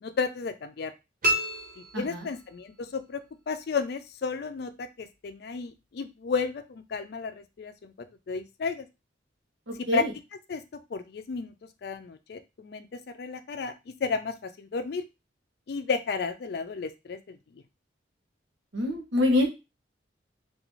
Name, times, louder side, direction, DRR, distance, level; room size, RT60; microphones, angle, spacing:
voice 1, 0.0-0.9 1.8-3.2 3.5-7.9 8.3-8.9 9.9-10.0 10.5-11.5 11.8-15.1 15.7-17.4, left 5 dB, 55° left, 9 dB, 0.3 m, -33 dB
sound 1, 1.2-2.8, equal, 45° right, 0.7 m, -30 dB
voice 2, 1.9-2.3 9.7-10.1 18.7-19.5, left 1 dB, 80° right, 1 dB, 0.9 m, -25 dB
2.4 x 2.3 x 3.0 m, 0.25 s
head